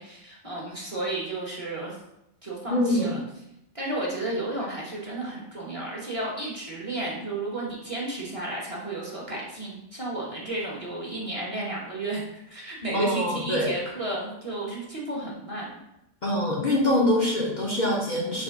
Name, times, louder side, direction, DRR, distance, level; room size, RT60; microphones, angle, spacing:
voice 1, 0.0-2.0 2.4-3.2 3.7-15.8, right 2 dB, 30° right, -4 dB, 1.0 m, -32 dB
voice 2, 2.7-3.2 12.9-13.7 16.2-18.4, left 1 dB, 45° left, -4 dB, 0.8 m, -24 dB
3.6 x 3.0 x 4.6 m, 0.84 s
omnidirectional pair, 1.2 m